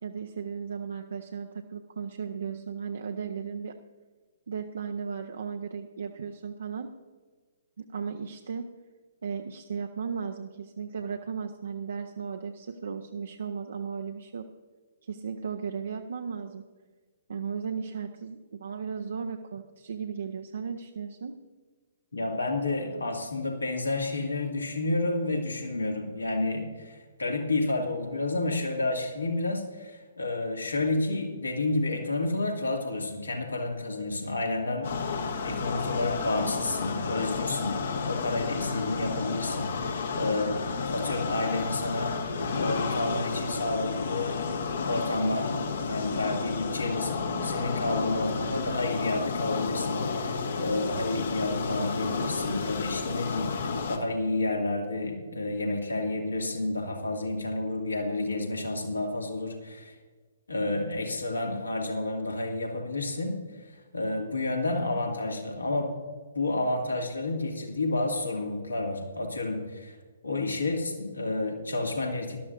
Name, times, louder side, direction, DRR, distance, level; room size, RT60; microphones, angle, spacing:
voice 1, 0.0-3.7 4.5-6.9 7.8-8.7 9.2-14.5 15.0-16.6 17.3-21.4 64.9-65.1, right 6 dB, 60° right, 5 dB, 0.7 m, -36 dB
voice 2, 22.1-40.5 40.8-44.5 44.8-45.5 45.8-60.0 60.5-63.6 63.9-65.9 66.3-70.0 70.2-72.4, left 2 dB, 75° left, 1 dB, 2.2 m, -30 dB
sound 1, 34.8-54.0, left 4 dB, 55° left, 1.2 m, -31 dB
18.5 x 12.5 x 2.6 m, 1.4 s
figure-of-eight pair, 125°, 0 cm